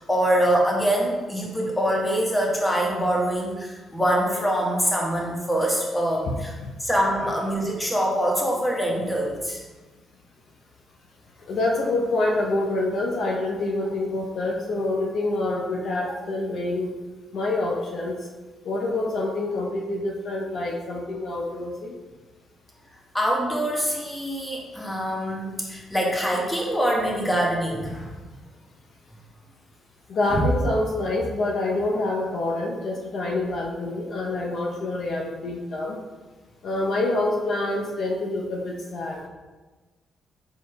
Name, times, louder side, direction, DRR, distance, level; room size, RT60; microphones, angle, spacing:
voice 1, 0.0-6.5 6.8-9.6 23.1-28.1 30.3-30.4, equal, 10° left, -2 dB, 1.2 m, -24 dB
voice 2, 11.5-16.9 17.3-18.2 18.6-21.9 30.1-36.0 36.6-39.3, left 2 dB, 65° left, -1 dB, 0.6 m, -26 dB
4.9 x 4.2 x 2.2 m, 1.3 s
supercardioid pair, 55°, 0 cm